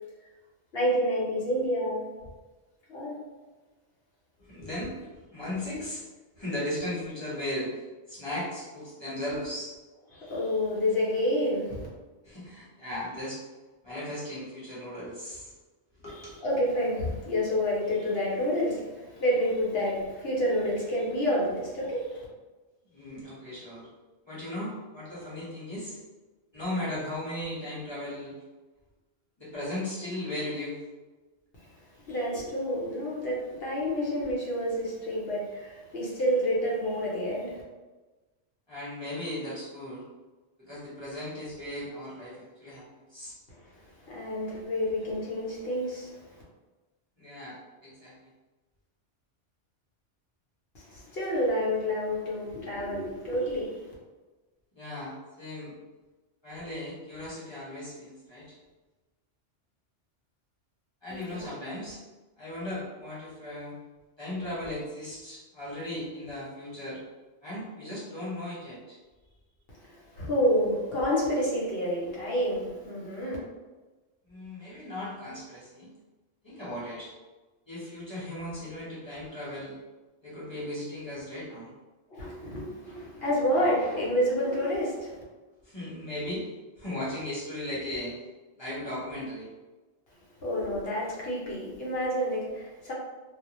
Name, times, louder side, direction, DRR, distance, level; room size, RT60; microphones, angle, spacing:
voice 1, 0.7-2.1 2.9-3.2 10.1-11.9 16.1-22.2 31.6-37.6 43.6-46.4 50.7-53.9 61.1-61.5 69.7-73.4 82.1-85.2 90.4-92.9, equal, 60° left, -6 dB, 0.9 m, -29 dB
voice 2, 4.4-6.0 6.4-7.8 8.1-9.7 12.2-13.4 13.8-15.5 16.0-16.3 22.9-23.9 24.2-26.0 26.5-28.3 29.4-30.8 38.7-40.0 40.6-42.8 43.1-43.3 47.2-48.3 54.7-55.8 56.4-58.6 61.0-62.0 62.4-63.8 64.2-67.0 67.4-69.0 74.2-75.9 76.4-77.1 77.7-79.8 80.2-81.7 85.6-86.5 86.8-88.2 88.5-89.5, left 1 dB, 25° left, -10 dB, 0.9 m, -37 dB
2.3 x 2.1 x 2.9 m, 1.2 s
omnidirectional pair, 1.2 m